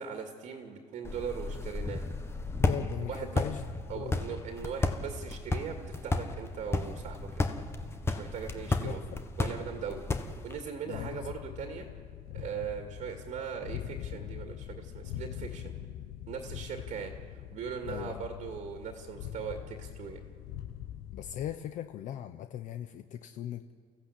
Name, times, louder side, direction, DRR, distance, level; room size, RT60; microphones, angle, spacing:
voice 1, 0.0-2.1 3.1-3.4 3.9-7.5 8.1-9.0 9.4-10.0 10.4-11.9 12.3-15.7 16.3-20.2, right 7 dB, 55° right, 4 dB, 2.3 m, -39 dB
sound 1, 1.0-10.6, left 3 dB, 15° left, 1.3 m, -33 dB
voice 2, 2.6-3.7 3.9-4.2 8.8-9.2 10.1-10.2 10.9-11.2 17.9-18.3 21.1-23.7, left 10 dB, 55° left, 9 dB, 0.8 m, -39 dB
sound 2, 10.9-21.5, left 11 dB, 85° left, 1.0 m, -43 dB
29.5 x 15.0 x 8.5 m, 2.1 s
cardioid pair, 140°, 15 cm